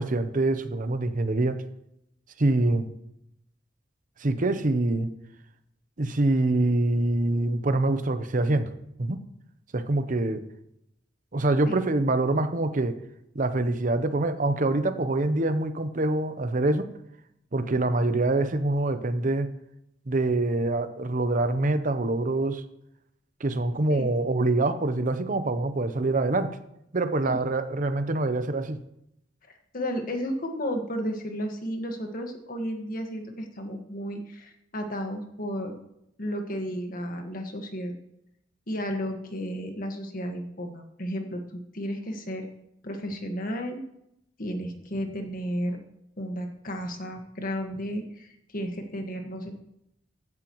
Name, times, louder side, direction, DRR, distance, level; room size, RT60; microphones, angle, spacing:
voice 1, 0.0-1.6 2.4-2.9 4.2-5.1 6.0-8.7 9.0-9.2 9.7-10.4 11.3-13.0 13.3-16.9 17.5-19.5 20.1-22.6 23.4-26.6 26.9-28.8, right 2 dB, 45° right, 10 dB, 0.8 m, -25 dB
voice 2, 29.7-35.8 36.2-37.9 38.7-42.5 42.8-43.8 44.4-45.8 46.2-48.3 48.5-49.5, equal, 50° left, 4 dB, 1.6 m, -33 dB
15.5 x 11.0 x 3.1 m, 0.80 s
head